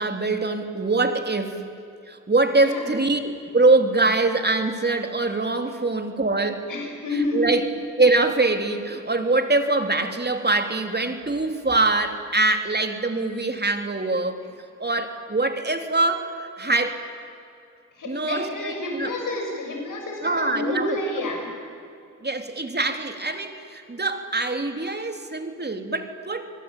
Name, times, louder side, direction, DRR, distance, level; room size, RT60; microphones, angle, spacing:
voice 1, 0.0-1.6 2.1-6.7 7.1-7.6 8.0-14.4 14.8-17.0 18.0-19.1 20.2-21.3 22.2-26.5, right 3 dB, 30° right, 6 dB, 3.3 m, -23 dB
voice 2, 2.5-2.9 6.7-7.6 18.0-21.5, left 2 dB, 80° left, 2 dB, 6.7 m, -29 dB
28.5 x 21.5 x 9.1 m, 2.5 s
cardioid pair, 55°, 31 cm